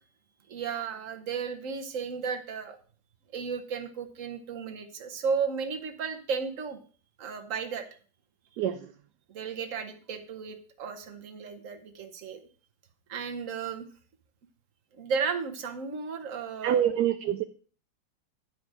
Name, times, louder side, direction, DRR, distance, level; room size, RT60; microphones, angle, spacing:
voice 1, 0.5-2.8 3.3-6.8 7.2-7.8 9.3-12.4 13.1-13.9 15.0-17.0, right 6 dB, 50° right, 6 dB, 1.3 m, -34 dB
voice 2, 16.6-17.4, right 10 dB, 70° right, 9 dB, 1.1 m, -25 dB
9.6 x 5.0 x 6.2 m, 0.42 s
omnidirectional pair, 1.9 m